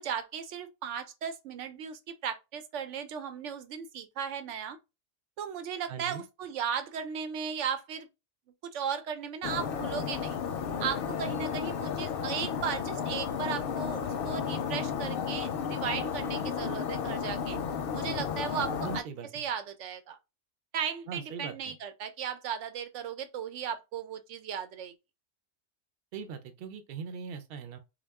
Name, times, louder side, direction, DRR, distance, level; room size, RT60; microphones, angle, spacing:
voice 1, 0.0-4.8 5.4-8.1 8.7-10.4 10.8-17.6 17.9-19.0 19.3-20.2 20.7-24.9, right 7 dB, 85° right, 1.0 m, -36 dB
voice 2, 5.9-6.2 18.7-19.4 21.1-21.8 26.1-27.8, right 6 dB, 60° right, 0.8 m, -40 dB
sound 1, 9.4-19.0, left 7 dB, 60° left, 0.6 m, -33 dB
3.6 x 2.3 x 3.4 m
omnidirectional pair, 1.2 m